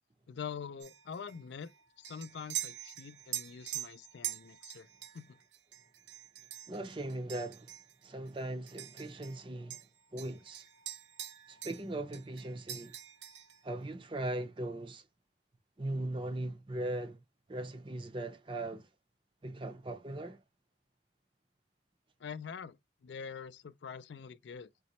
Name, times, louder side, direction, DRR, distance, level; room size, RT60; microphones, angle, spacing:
voice 1, 0.3-1.7 2.0-4.9 5.1-5.4 22.2-22.8 23.0-24.7, left 6 dB, 70° left, 0.4 m, -44 dB
sound 1, 0.8-9.4 9.7-11.9 12.1-13.6, right 12 dB, 75° right, 0.8 m, -44 dB
voice 2, 6.7-7.7 8.0-9.8 10.1-10.7 11.5-12.9 13.6-15.0 15.8-17.2 17.5-18.9 19.4-20.4, right 1 dB, 25° right, 0.5 m, -39 dB
4.1 x 3.1 x 2.9 m
head